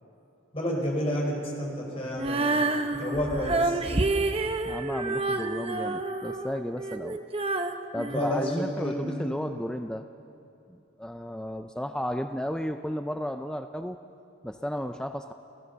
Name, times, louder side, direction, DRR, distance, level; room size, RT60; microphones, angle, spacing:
voice 1, 0.5-3.8 8.1-9.3, equal, 30° left, -1 dB, 4.7 m, -30 dB
Female singing, 2.2-9.2, right 2 dB, 30° right, 0.9 m, -29 dB
voice 2, 4.6-7.2 7.9-10.1 10.7-14.0 14.4-15.3, equal, 5° left, 7 dB, 0.5 m, -33 dB
29.5 x 15.5 x 6.8 m, 2.7 s
head